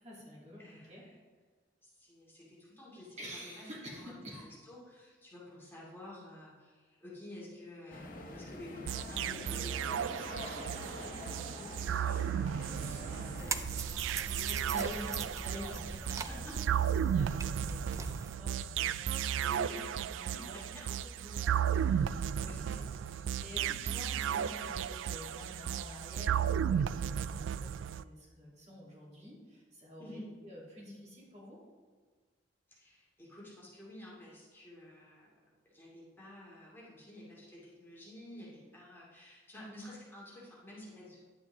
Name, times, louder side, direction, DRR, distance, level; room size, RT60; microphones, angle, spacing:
voice 1, 0.0-1.0 3.2-4.5 14.7-19.6 20.1-22.8 23.2-31.6, equal, 40° right, -5 dB, 2.8 m, -49 dB
voice 2, 0.6-1.1 1.8-4.2 4.7-10.2 10.4-16.5 19.5-20.0 20.3-20.8 21.7-21.9 22.4-23.0 23.8-24.0 30.0-30.3 32.8-35.3 35.7-41.2, left 1 dB, 10° left, -6 dB, 2.4 m, -50 dB
sound 1, 7.9-13.6, left 2 dB, 50° left, 1.2 m, -46 dB
sound 2, 8.9-28.0, right 9 dB, 85° right, 0.3 m, -34 dB
sound 3, 13.4-18.4, right 4 dB, 15° right, 0.4 m, -41 dB
10.5 x 8.5 x 3.5 m, 1.5 s
head